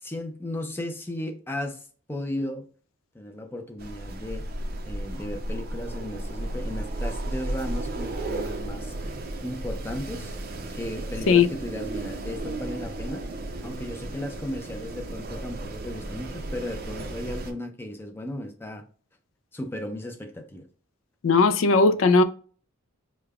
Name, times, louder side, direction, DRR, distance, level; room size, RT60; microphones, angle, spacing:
voice 1, 0.0-2.7 3.1-4.4 4.8-8.9 9.4-10.3 10.7-13.2 13.6-18.8 19.5-20.6, left 1 dB, 10° left, 0.5 m, -35 dB
Wind, 3.8-17.5, right 1 dB, 45° right, 0.5 m, -34 dB
voice 2, 21.2-22.2, left 4 dB, 65° left, 0.4 m, -18 dB
5.1 x 2.2 x 2.3 m
head